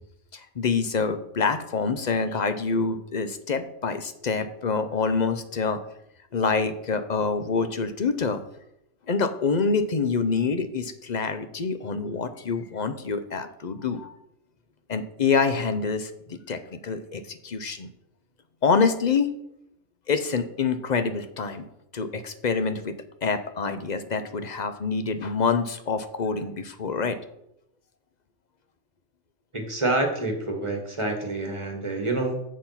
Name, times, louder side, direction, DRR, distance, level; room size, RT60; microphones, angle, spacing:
voice 1, 0.3-5.8 6.3-8.4 9.1-14.1 14.9-17.9 18.6-19.3 20.1-21.7 21.9-27.2, left 5 dB, 45° left, 10 dB, 0.7 m, -26 dB
voice 2, 29.5-32.4, right 2 dB, 25° right, 3 dB, 1.6 m, -27 dB
7.3 x 6.5 x 5.7 m, 0.79 s
omnidirectional pair, 1.2 m